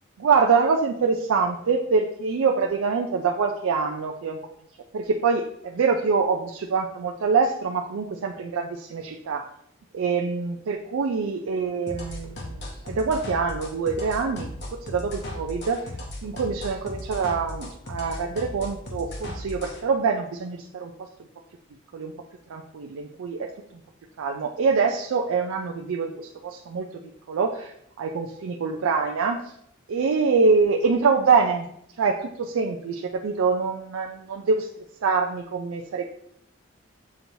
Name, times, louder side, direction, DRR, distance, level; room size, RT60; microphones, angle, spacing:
voice 1, 0.2-4.4 4.9-9.5 9.9-14.5 14.9-15.9 16.2-20.9 21.9-22.1 22.5-23.5 24.2-26.9 27.3-29.5 29.9-31.7 32.0-34.7 35.0-36.0, right 5 dB, 90° right, 1 dB, 0.4 m, -25 dB
sound 1, 11.9-19.8, left 1 dB, 55° left, 0.8 m, -36 dB
6.8 x 2.9 x 2.7 m, 0.73 s
head